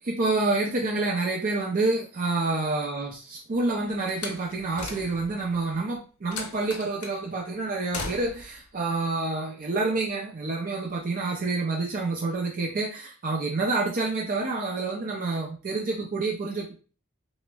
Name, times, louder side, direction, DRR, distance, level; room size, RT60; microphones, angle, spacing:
voice 1, 0.0-16.8, right 3 dB, 40° right, -1 dB, 0.4 m, -28 dB
Slam, 4.1-5.4 6.3-7.2 7.9-8.6, left 4 dB, 85° left, 0.7 m, -37 dB
5.8 x 2.1 x 2.2 m, 0.37 s
head